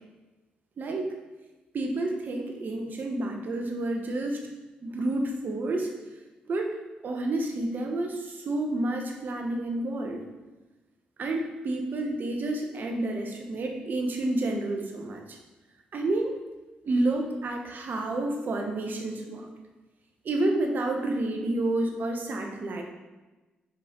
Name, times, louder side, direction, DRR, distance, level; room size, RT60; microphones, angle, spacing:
voice 1, 1.7-4.4 4.8-5.9 6.5-6.7 7.0-10.2 11.2-15.2 15.9-16.3 16.8-19.5 20.2-22.8, right 2 dB, 55° right, 3 dB, 1.2 m, -29 dB
6.5 x 5.1 x 4.0 m, 1.1 s
supercardioid pair, 55°, 4 cm